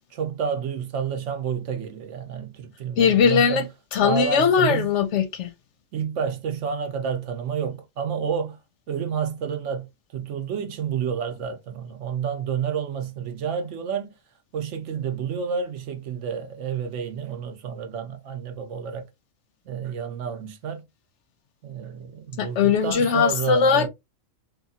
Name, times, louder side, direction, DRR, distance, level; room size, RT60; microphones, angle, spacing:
voice 1, 0.1-3.6 4.0-4.9 5.9-8.6 8.9-14.2 14.5-19.1 19.6-20.8 21.6-23.9, right 7 dB, 65° right, 0.9 m, -29 dB
voice 2, 3.0-3.6 3.9-5.5 22.4-23.9, left 6 dB, 65° left, 0.8 m, -20 dB
3.0 x 2.3 x 2.6 m
omnidirectional pair, 1.4 m